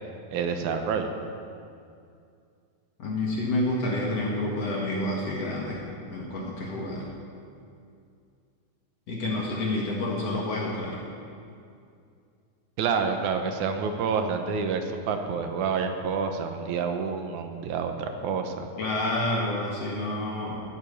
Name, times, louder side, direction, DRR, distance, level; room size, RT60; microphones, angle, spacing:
voice 1, 0.3-1.1 12.8-18.7, right 5 dB, 80° right, 6 dB, 2.4 m, -28 dB
voice 2, 3.0-5.8 6.1-7.1 9.1-11.0 18.8-20.6, left 1 dB, 55° left, -3 dB, 2.8 m, -29 dB
14.0 x 7.9 x 9.7 m, 2.4 s
omnidirectional pair, 3.5 m